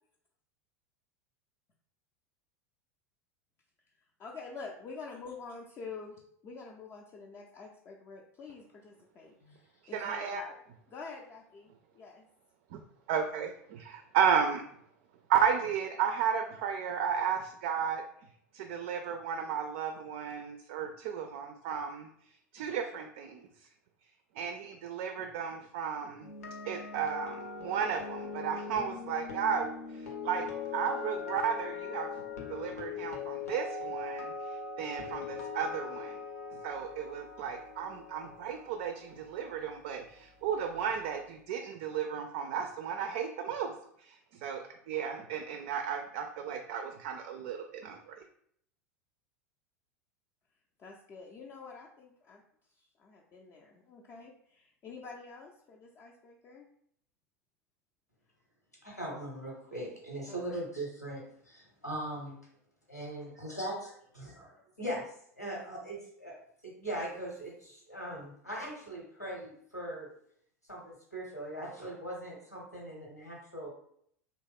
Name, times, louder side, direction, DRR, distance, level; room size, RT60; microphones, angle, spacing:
voice 1, 4.2-10.6 10.9-12.3 50.8-52.4 52.8-56.7 60.3-60.6, left 4 dB, 30° left, -1 dB, 0.4 m, -47 dB
voice 2, 9.9-10.4 12.7-12.8 13.1-14.6 15.3-18.0 18.5-22.1 22.5-23.5 24.4-26.3 26.6-30.5 30.7-32.2 32.5-36.2 36.6-43.7 44.0-44.2 44.4-48.2, right 7 dB, 50° right, 5 dB, 0.3 m, -33 dB
sound 1, 26.2-40.3 40.5-40.8, left 5 dB, 70° left, 0.6 m, -41 dB
voice 3, 58.8-62.3 62.9-65.0 65.4-66.3 66.6-70.1 70.7-73.7, right 1 dB, 90° left, -3 dB, 1.1 m, -40 dB
2.9 x 2.0 x 3.4 m, 0.68 s
figure-of-eight pair, 80°, 8 cm